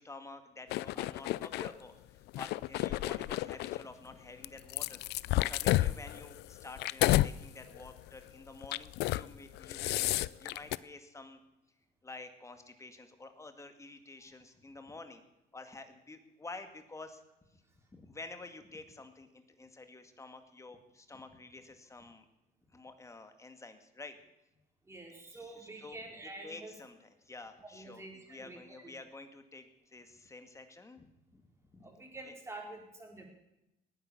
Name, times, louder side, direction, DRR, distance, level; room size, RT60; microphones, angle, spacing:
voice 1, 0.0-11.4 12.0-15.2 15.5-17.6 17.9-22.3 22.7-24.2 25.3-26.0 26.4-31.1 31.3-31.4 31.7-31.9 32.2-32.3, left 3 dB, 15° left, 8 dB, 2.0 m, -50 dB
sound 1, 0.7-1.7 2.3-3.8 4.4-7.3 7.7-8.0 8.6-9.3 9.5-10.8, left 17 dB, 80° left, 0.5 m, -31 dB
voice 2, 24.8-26.7 27.6-28.6 31.8-33.2, right 2 dB, 15° right, 1 dB, 4.7 m, -47 dB
18.5 x 10.0 x 7.2 m, 0.89 s
cardioid pair, 110°, 17 cm